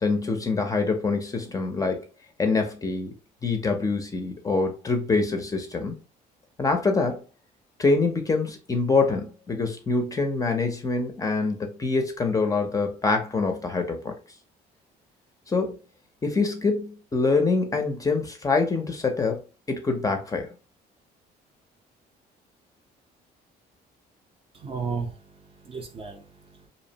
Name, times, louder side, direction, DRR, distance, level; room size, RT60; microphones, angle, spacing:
voice 1, 0.0-2.0 2.4-3.1 3.4-6.0 6.6-7.2 7.8-14.1 15.5-15.8 16.2-19.4 19.7-20.5, left 3 dB, 20° left, 0.5 m, -25 dB
voice 2, 24.5-26.7, right 5 dB, 35° right, 0.6 m, -35 dB
2.7 x 2.0 x 2.7 m
cardioid pair, 110°, 17 cm